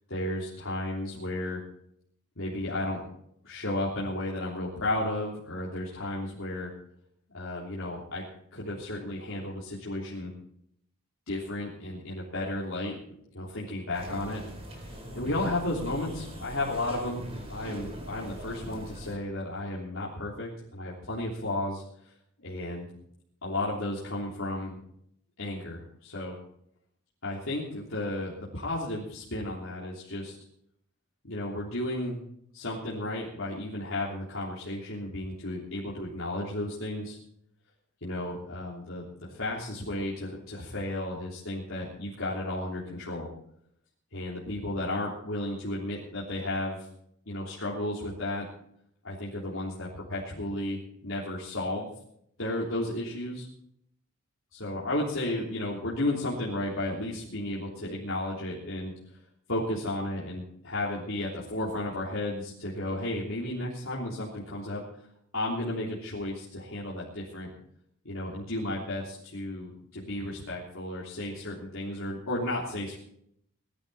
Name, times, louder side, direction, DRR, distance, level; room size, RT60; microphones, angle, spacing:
voice 1, 0.1-1.6 2.4-3.0 3.4-6.7 7.3-8.2 8.5-10.3 11.3-13.0 13.3-14.4 14.7-17.2 17.5-22.1 22.4-22.9 23.4-24.8 25.4-26.4 27.2-30.4 31.2-32.2 32.5-37.2 38.0-43.3 44.1-46.9 47.3-48.5 49.0-51.9 52.4-53.5 54.5-59.2 59.5-64.8 65.3-67.5 68.1-73.0, left 1 dB, 70° left, -6 dB, 3.3 m, -33 dB
sound 1, 13.9-19.2, equal, 30° right, 4.3 m, -42 dB
19.5 x 12.5 x 4.2 m, 0.70 s
head